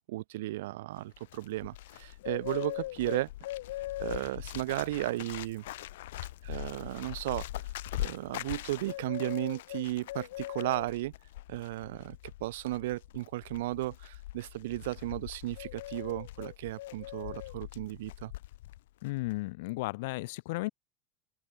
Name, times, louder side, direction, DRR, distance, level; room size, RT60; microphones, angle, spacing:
voice 1, 0.1-3.3 4.0-5.6 6.4-7.5 8.0-11.1 11.5-18.3, right 17 dB, 85° right, 0.7 m, -35 dB
Bird, 1.0-18.8 19.0-19.4, left 16 dB, 90° left, 0.4 m, -41 dB
voice 2, 19.0-20.7, left 22 dB, 70° left, 0.9 m, -34 dB
open air
supercardioid pair, 155°, 0 cm